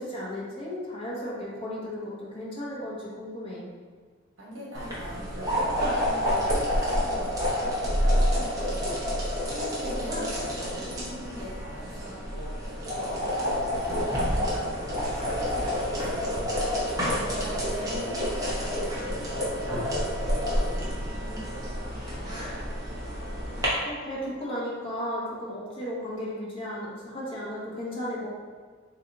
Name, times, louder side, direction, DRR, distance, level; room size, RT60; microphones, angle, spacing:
voice 1, 0.0-3.7 9.9-10.3 17.8-18.1 23.8-28.3, left 1 dB, 25° left, -6 dB, 0.9 m, -35 dB
voice 2, 4.4-9.0 9.5-16.8 17.3-21.0 21.2-22.8, right 1 dB, 80° right, -4 dB, 1.2 m, -42 dB
sound 1, 4.7-23.7, equal, 20° right, 0.8 m, -28 dB
3.2 x 2.8 x 3.9 m, 1.6 s
head